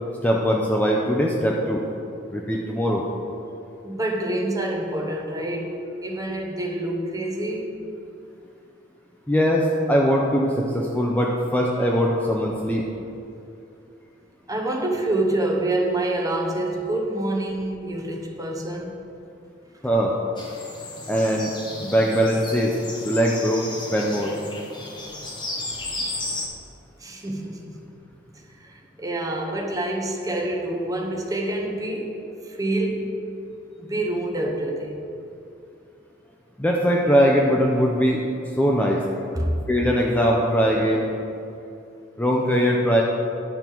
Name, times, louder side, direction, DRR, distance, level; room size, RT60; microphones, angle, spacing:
voice 1, 0.2-1.8 2.3-3.0 9.3-12.9 19.8-20.1 21.1-21.5 21.8-22.8 23.0-24.3 25.9-26.0 36.6-38.2 38.6-39.0 39.7-41.0 42.2-43.0, equal, 10° left, -2 dB, 0.5 m, -21 dB
voice 2, 3.8-7.9 14.5-19.0 26.0-26.1 27.0-27.8 28.3-32.2 32.4-33.1 33.8-35.0 39.3-39.6, right 1 dB, 20° right, 1 dB, 0.9 m, -27 dB
sound 1, 20.4-26.5, left 2 dB, 25° left, 1.0 m, -34 dB
11.0 x 5.4 x 4.6 m, 2.7 s
head